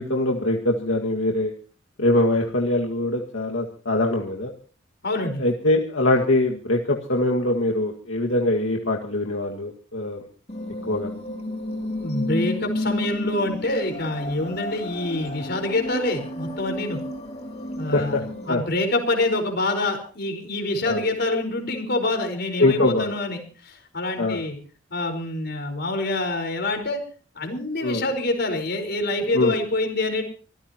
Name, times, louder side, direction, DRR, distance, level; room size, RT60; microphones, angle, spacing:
voice 1, 0.0-1.5 2.0-4.5 5.4-10.2 10.9-11.1 17.9-18.2 18.5-18.6 20.8-21.0 22.6-23.1 24.2-24.4 27.8-28.0 29.3-29.5, left 1 dB, 80° left, 0 dB, 2.0 m, -23 dB
voice 2, 5.0-5.4 12.0-17.0 17.8-18.2 18.4-24.6 24.9-27.0 27.4-30.2, left 2 dB, 55° left, 4 dB, 4.9 m, -26 dB
sound 1, 10.5-18.5, left 1 dB, 35° left, 2.9 m, -31 dB
25.5 x 15.5 x 3.0 m, 0.39 s
head